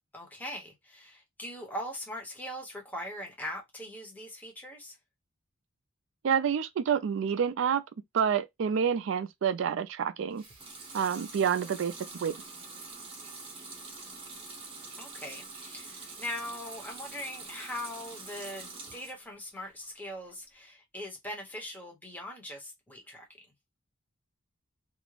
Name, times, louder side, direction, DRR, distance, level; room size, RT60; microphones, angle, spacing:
voice 1, 0.1-5.0 15.0-23.3, left 1 dB, 10° left, 0.7 m, -41 dB
voice 2, 6.2-7.8 8.1-10.4 10.9-11.9 12.2-12.4, right 7 dB, 65° right, 0.3 m, -28 dB
Water tap faucet / Sink (filling or washing) / Liquid, 10.3-19.2 19.6-20.4, right 3 dB, 25° right, 0.7 m, -45 dB
2.4 x 2.0 x 3.0 m
head